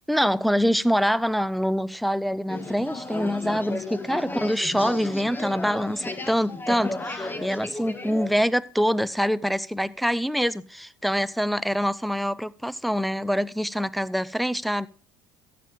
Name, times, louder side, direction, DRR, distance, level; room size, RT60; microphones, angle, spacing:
voice 1, 0.1-14.9, equal, ahead, 0.5 m, -25 dB
sound 1, 2.5-8.4, left 2 dB, 15° left, 1.3 m, -34 dB
13.5 x 7.7 x 3.6 m
hypercardioid pair, 80°, 12 cm